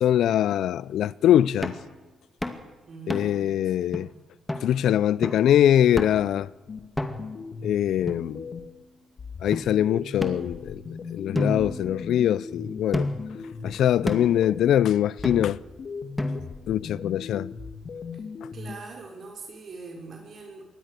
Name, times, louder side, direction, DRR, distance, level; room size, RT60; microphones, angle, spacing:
voice 1, 0.0-1.7 3.1-4.1 4.6-6.5 7.6-8.4 9.4-10.8 11.1-13.1 13.6-15.6 16.7-17.5, left 11 dB, 75° left, 0.6 m, -22 dB
sound 1, 1.6-1.9 2.4-2.6 3.1-3.5 3.9-4.0 4.5-4.7 5.2-5.5 6.0-6.3 7.0-7.4 8.1-8.8 9.5-9.6 10.2-10.9 11.3-12.4 12.9-13.4 14.1-14.4 15.2-15.7 16.2-16.7, left 1 dB, 10° left, 2.4 m, -31 dB
voice 2, 2.9-3.5 3.8-3.9 18.5-20.7, right 4 dB, 50° right, 5.8 m, -42 dB
sound 2, 6.7-8.8 9.2-14.8 15.2-18.8, left 5 dB, 45° left, 2.2 m, -38 dB
23.5 x 18.5 x 6.8 m
cardioid pair, 90°, 0 cm